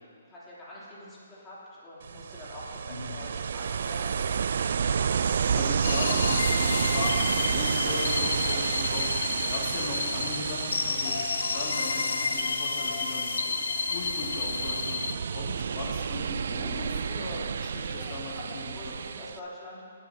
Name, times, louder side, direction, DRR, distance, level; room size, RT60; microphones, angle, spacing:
voice 1, 0.2-4.1 17.8-19.8, left 1 dB, 15° left, -8 dB, 3.0 m, -45 dB
Ocean, 2.0-19.4, right 6 dB, 60° right, 0.3 m, -30 dB
voice 2, 5.5-13.6 13.9-18.9, left 3 dB, 45° left, -3 dB, 2.2 m, -38 dB
sound 1, 5.8-15.1, left 5 dB, 70° left, 0.5 m, -31 dB
16.0 x 8.9 x 2.8 m, 2.2 s
hypercardioid pair, 140°, 0 cm